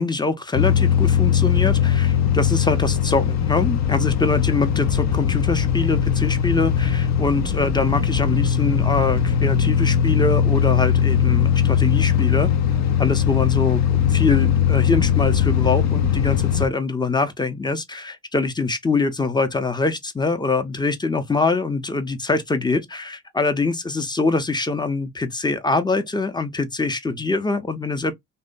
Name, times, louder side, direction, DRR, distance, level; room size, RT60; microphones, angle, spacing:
voice 1, 0.0-12.5 13.0-28.1, left 3 dB, 15° left, 0.6 m, -24 dB
sound 1, 0.5-16.7, left 9 dB, 60° left, 0.5 m, -20 dB
2.7 x 2.1 x 2.4 m
supercardioid pair, 65°, 31 cm